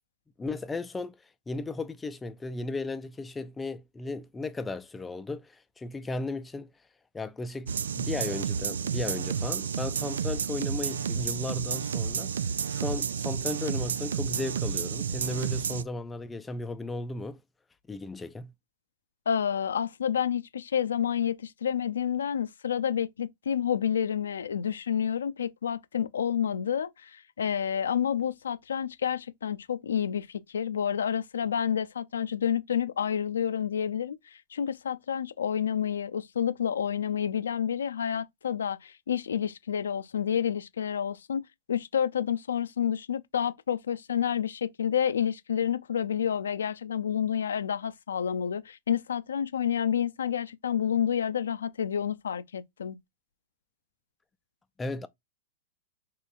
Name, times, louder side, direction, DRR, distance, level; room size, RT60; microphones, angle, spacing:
voice 1, 0.4-1.2 1.5-6.7 7.1-12.3 12.7-17.4 17.9-18.5 54.8-55.1, left 2 dB, 10° left, 0.4 m, -35 dB
sound 1, 7.7-15.8, right 7 dB, 75° right, 0.3 m, -31 dB
voice 2, 19.3-53.0, left 8 dB, 75° left, 0.4 m, -29 dB
4.7 x 3.0 x 2.3 m
figure-of-eight pair, 105°, 0 cm